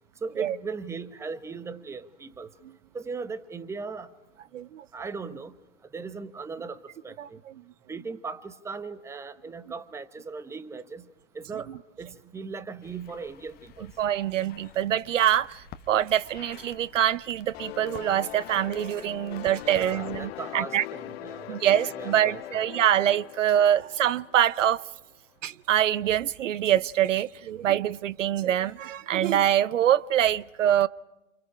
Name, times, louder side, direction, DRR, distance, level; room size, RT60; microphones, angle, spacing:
voice 1, 0.2-2.5 2.9-4.1 4.9-5.5 5.9-6.8 7.0-7.4 7.9-11.1 11.3-11.7 12.0-13.9 19.7-22.8, right 4 dB, 5° right, 0.9 m, -38 dB
voice 2, 4.5-4.8 7.2-7.3 14.0-20.8 21.5-24.8 25.4-30.9, right 11 dB, 75° right, 0.8 m, -24 dB
sound 1, 12.8-20.3, left 11 dB, 25° left, 1.2 m, -50 dB
sound 2, 17.5-25.0, left 15 dB, 50° left, 0.9 m, -41 dB
29.0 x 28.5 x 5.0 m
hypercardioid pair, 125°, 38 cm